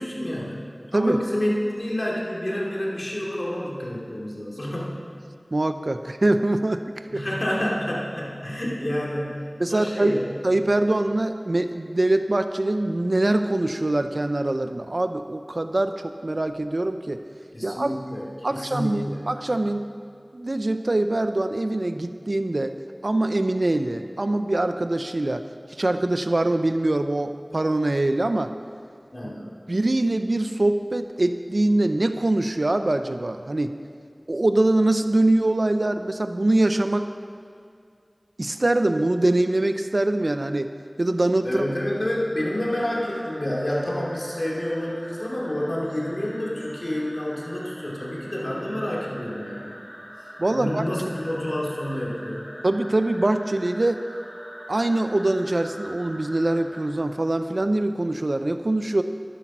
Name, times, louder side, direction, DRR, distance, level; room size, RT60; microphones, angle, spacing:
voice 1, 0.0-4.9 7.1-10.3 17.5-19.2 29.1-29.5 41.4-49.8 50.5-52.4, left 1 dB, 65° left, -4 dB, 2.6 m, -29 dB
voice 2, 5.5-7.2 9.6-17.3 17.6-17.9 18.4-19.9 20.3-22.8 23.0-25.5 25.8-28.5 29.7-33.8 34.3-37.1 38.4-40.7 41.0-41.6 50.4-50.8 52.6-54.0 54.7-59.0, right 2 dB, 75° right, 9 dB, 0.5 m, -23 dB
sound 1, 42.4-56.9, equal, 15° right, 2.4 m, -43 dB
12.0 x 10.0 x 6.1 m, 2.3 s
wide cardioid pair, 40°, 0 cm